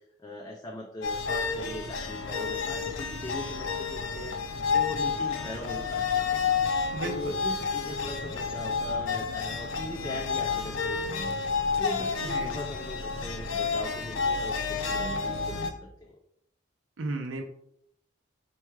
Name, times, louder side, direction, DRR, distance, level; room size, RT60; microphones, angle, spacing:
voice 1, 0.2-4.4 4.7-6.4 6.7-11.3 11.8-16.2, left 1 dB, 20° left, 0 dB, 0.4 m, -40 dB
sound 1, 1.0-15.7, left 5 dB, 80° left, 0.6 m, -30 dB
voice 2, 6.9-7.4 12.2-12.5 17.0-17.4, right 2 dB, 85° right, 3 dB, 0.5 m, -34 dB
4.5 x 2.3 x 4.6 m, 0.72 s
head